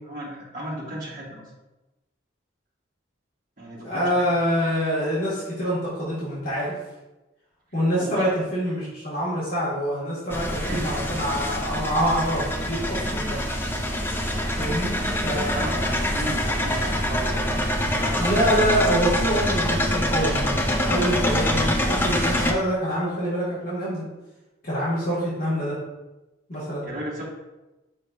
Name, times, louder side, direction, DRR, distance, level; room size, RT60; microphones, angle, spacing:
voice 1, 0.1-1.4 3.6-4.3 8.0-8.3 10.6-10.9 15.0-17.5 17.8-18.5 26.8-27.2, right 1 dB, 45° right, -6 dB, 2.0 m, -34 dB
voice 2, 3.8-6.7 7.7-13.4 14.6-15.0 15.2-15.9 18.2-24.0 24.6-25.8 26.5-26.9, equal, 50° left, -8 dB, 1.9 m, -25 dB
sound 1, 10.3-22.5, left 1 dB, 10° left, 0.5 m, -25 dB
7.5 x 5.1 x 2.5 m, 1.0 s
head